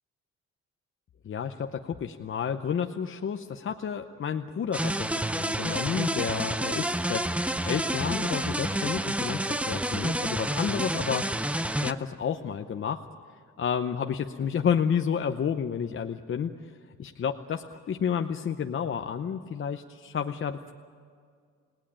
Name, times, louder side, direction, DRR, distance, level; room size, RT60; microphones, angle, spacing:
voice 1, 1.2-7.2 7.6-11.3 11.8-13.0 13.6-16.5 17.0-20.7, left 7 dB, 40° left, 6 dB, 0.8 m, -30 dB
sound 1, 4.7-11.9, right 1 dB, 5° right, 0.6 m, -29 dB
28.5 x 18.5 x 9.0 m, 2.1 s
cardioid pair, 145°, 31 cm